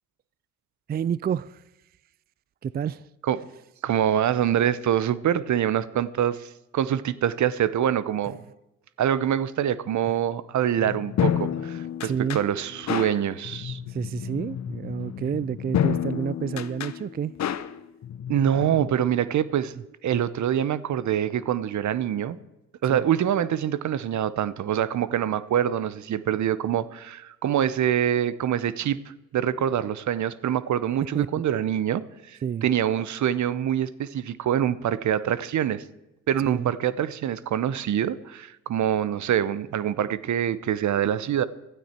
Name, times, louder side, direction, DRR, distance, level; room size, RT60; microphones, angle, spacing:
voice 1, 0.9-1.6 2.6-3.1 12.0-12.4 13.9-17.3 22.9-23.0 31.1-31.3 32.4-32.7 36.5-36.7, right 8 dB, 30° right, 20 dB, 0.4 m, -29 dB
voice 2, 3.8-8.4 9.0-13.8 18.3-19.7 20.0-22.4 22.8-29.0 29.3-32.0 32.3-35.8 36.3-41.5, right 10 dB, 65° right, 17 dB, 0.8 m, -25 dB
sound 1, 10.8-18.9, left 9 dB, 55° left, 0.9 m, -30 dB
16.5 x 12.5 x 4.5 m, 0.94 s
supercardioid pair, 65°, 32 cm